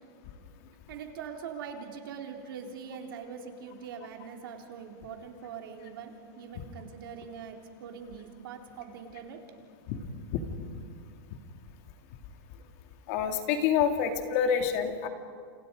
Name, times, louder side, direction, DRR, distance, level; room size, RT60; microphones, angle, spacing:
voice 1, 0.9-9.4, right 6 dB, 65° right, 3 dB, 3.5 m, -42 dB
voice 2, 13.1-15.1, left 7 dB, 40° left, 6 dB, 2.2 m, -27 dB
29.5 x 29.0 x 5.2 m, 2.1 s
supercardioid pair, 175°, 13 cm